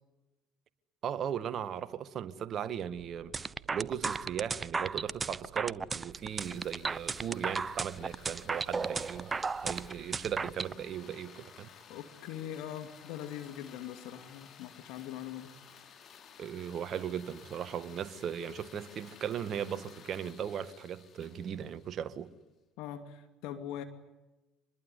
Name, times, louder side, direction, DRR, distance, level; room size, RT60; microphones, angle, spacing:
voice 1, 1.0-3.3 3.7-9.3 9.6-11.7 16.4-22.3, right 8 dB, 50° right, 1.7 m, -37 dB
sound 1, 2.9-11.0, right 11 dB, 75° right, 2.9 m, -57 dB
sound 2, 3.3-10.7, right 4 dB, 25° right, 0.9 m, -34 dB
sound 3, 6.1-22.3, left 7 dB, 45° left, 3.3 m, -55 dB
voice 2, 11.9-15.5 22.8-23.8, left 10 dB, 70° left, 2.6 m, -42 dB
26.0 x 21.5 x 9.6 m
hypercardioid pair, 70°, 0 cm